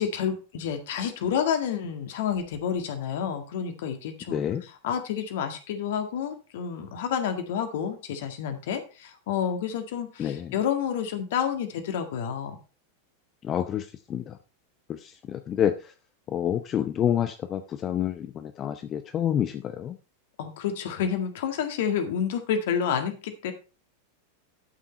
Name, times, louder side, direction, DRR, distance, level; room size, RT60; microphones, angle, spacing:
voice 1, 0.0-12.6 20.4-23.5, left 8 dB, 55° left, 7 dB, 1.9 m, -29 dB
voice 2, 4.3-4.6 10.2-10.5 13.4-14.3 15.0-15.7 16.3-20.0, left 10 dB, 30° left, 9 dB, 0.7 m, -28 dB
12.0 x 5.9 x 4.3 m, 0.34 s
figure-of-eight pair, 90°, 0 cm